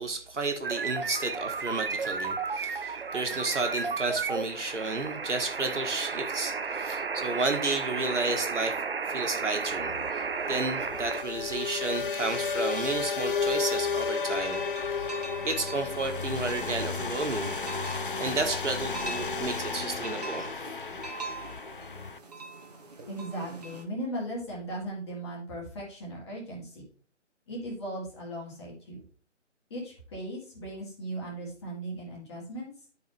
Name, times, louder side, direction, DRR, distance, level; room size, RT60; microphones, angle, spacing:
voice 1, 0.0-8.8 9.1-14.6 15.0-15.2 15.4-17.8 18.2-20.5, right 3 dB, 70° right, 4 dB, 1.7 m, -32 dB
sound 1, 0.6-11.2, right 5 dB, 50° right, 0.6 m, -33 dB
sound 2, 9.8-22.2, left 5 dB, 45° left, 0.4 m, -33 dB
sound 3, 14.4-23.8, right 3 dB, 35° right, 1.1 m, -43 dB
voice 2, 23.1-26.9 27.5-29.0 29.7-32.7, right 1 dB, 20° left, -3 dB, 1.9 m, -37 dB
11.0 x 4.7 x 3.4 m, 0.43 s
figure-of-eight pair, 155°, 37 cm